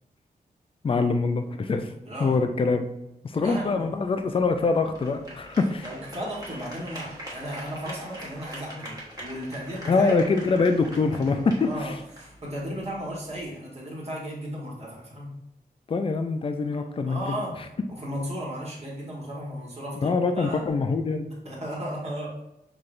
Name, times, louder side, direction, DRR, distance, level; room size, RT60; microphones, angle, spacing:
voice 1, 0.8-1.9 2.2-2.9 3.2-5.9 9.9-11.9 15.9-17.4 20.0-21.3, left 4 dB, 35° left, 7 dB, 0.4 m, -24 dB
voice 2, 2.0-2.4 3.4-3.9 5.8-10.2 11.6-11.9 12.2-15.3 16.7-16.8 17.1-17.5 17.9-20.6 21.4-22.3, equal, 40° right, -4 dB, 1.3 m, -35 dB
sound 1, 3.6-13.4, equal, 20° right, 1.2 m, -43 dB
5.8 x 3.4 x 2.5 m, 0.84 s
wide cardioid pair, 155°, 17 cm